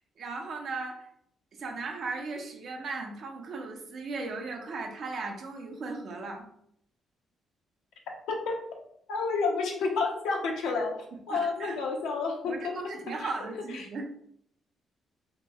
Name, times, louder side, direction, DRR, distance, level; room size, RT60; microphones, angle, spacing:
voice 1, 0.2-1.1 1.6-6.5 11.3-11.8 12.5-14.0, right 3 dB, 60° right, 3 dB, 0.6 m, -37 dB
voice 2, 9.1-10.9 11.3-13.3 13.7-13.9, left 4 dB, 85° left, 1 dB, 0.6 m, -30 dB
2.9 x 2.6 x 2.3 m, 0.71 s
cardioid pair, 90°, 0 cm